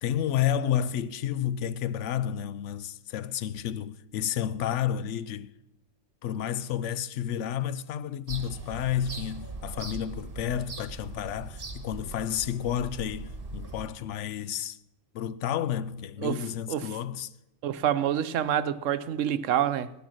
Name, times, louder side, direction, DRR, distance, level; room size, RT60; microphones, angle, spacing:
voice 1, 0.0-5.5 6.2-14.8 15.1-17.3, left 10 dB, 75° left, 0.9 m, -31 dB
sound 1, 8.3-13.9, right 3 dB, 50° right, 1.6 m, -40 dB
voice 2, 17.6-19.9, right 10 dB, 90° right, 1.0 m, -27 dB
13.0 x 10.0 x 6.3 m
omnidirectional pair, 1.3 m